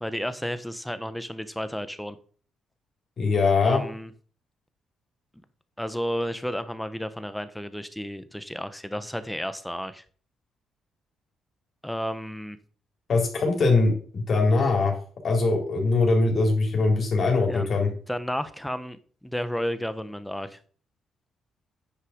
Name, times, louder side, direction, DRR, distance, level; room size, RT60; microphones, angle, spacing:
voice 1, 0.0-2.2 3.6-4.1 5.8-10.0 11.8-12.6 17.5-17.7 18.1-20.6, equal, 5° left, 12 dB, 1.0 m, -32 dB
voice 2, 3.2-3.8 13.1-14.9 15.2-17.9, left 3 dB, 50° left, 1 dB, 3.8 m, -22 dB
9.9 x 5.5 x 5.2 m, 0.44 s
cardioid pair, 90°, 0 cm